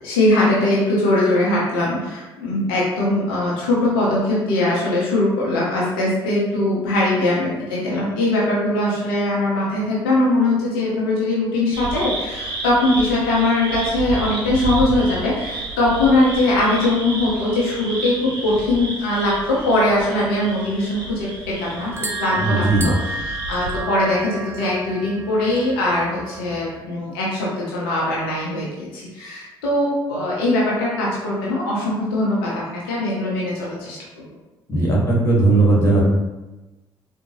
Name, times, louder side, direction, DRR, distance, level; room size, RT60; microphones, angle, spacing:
voice 1, 0.0-21.9 22.2-34.3, left 1 dB, 75° left, -6 dB, 0.7 m, -21 dB
sound 1, 11.7-23.8, right 2 dB, 75° right, 0.6 m, -31 dB
sound 2, 21.8-26.8, right 3 dB, 20° right, 0.5 m, -32 dB
voice 2, 22.4-22.9 34.7-36.0, right 2 dB, 20° left, -4 dB, 1.4 m, -17 dB
3.8 x 2.2 x 2.9 m, 1.1 s
figure-of-eight pair, 45°, 12 cm